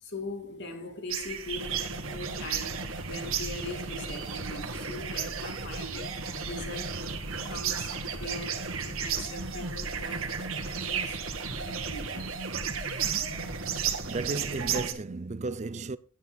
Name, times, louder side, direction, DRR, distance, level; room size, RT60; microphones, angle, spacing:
voice 1, 0.0-7.0 7.5-10.3 10.6-11.2 11.5-12.4, left 2 dB, 55° left, 2.6 m, -41 dB
sound 1, 1.1-14.9, right 9 dB, 90° right, 1.7 m, -35 dB
sound 2, 1.5-14.9, right 1 dB, 65° right, 2.0 m, -38 dB
voice 2, 13.7-16.0, right 3 dB, 35° right, 0.5 m, -34 dB
17.0 x 9.5 x 2.3 m
head